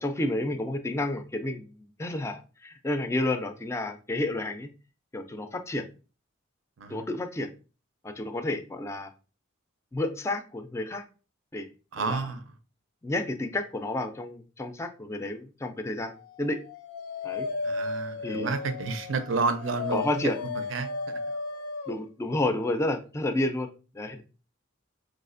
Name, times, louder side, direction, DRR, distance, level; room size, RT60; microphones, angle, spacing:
voice 1, 0.0-4.7 5.1-5.9 6.9-7.5 8.0-9.1 9.9-11.0 11.5-11.7 12.1-12.3 13.0-16.6 17.2-17.5 18.2-18.5 19.9-20.4 21.9-23.7 23.9-24.2, left 2 dB, 15° left, 0.3 m, -30 dB
voice 2, 11.9-12.4 17.6-20.1 20.7-20.9, right 4 dB, 70° right, 0.5 m, -30 dB
Dog, 16.4-22.0, left 3 dB, 85° left, 0.4 m, -35 dB
4.8 x 2.4 x 2.5 m
head